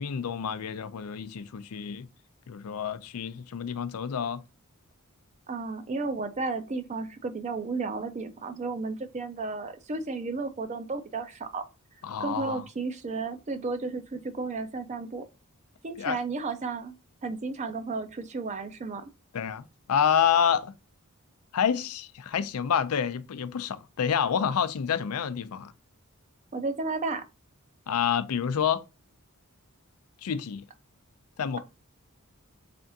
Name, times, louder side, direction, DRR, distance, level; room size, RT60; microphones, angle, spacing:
voice 1, 0.0-2.1 2.5-4.4 12.0-12.6 16.0-16.2 19.3-20.7 21.5-25.7 27.9-28.8 30.2-30.6 31.4-31.6, left 8 dB, 85° left, 0.4 m, -28 dB
voice 2, 5.5-11.6 12.2-15.3 15.8-17.0 17.2-19.0 26.5-27.2, right 3 dB, 35° right, 0.4 m, -33 dB
3.6 x 3.4 x 2.7 m
head